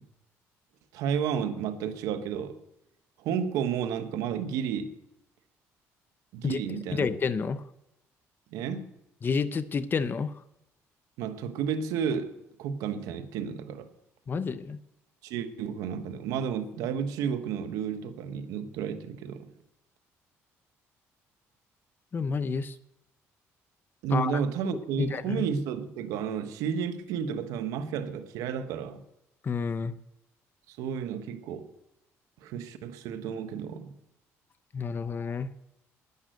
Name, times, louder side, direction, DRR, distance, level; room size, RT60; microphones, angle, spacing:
voice 1, 0.9-2.6 3.2-4.9 6.3-7.1 8.5-8.9 11.2-13.9 15.2-19.5 24.0-29.0 30.7-31.7 32.4-33.9, right 7 dB, 90° right, 1.2 m, -32 dB
voice 2, 6.4-7.6 9.2-10.3 14.3-14.8 22.1-22.8 24.1-24.3 25.0-25.5 29.4-29.9 34.7-35.5, left 5 dB, 35° left, 0.7 m, -30 dB
11.0 x 10.5 x 7.7 m
cardioid pair, 85°, 6 cm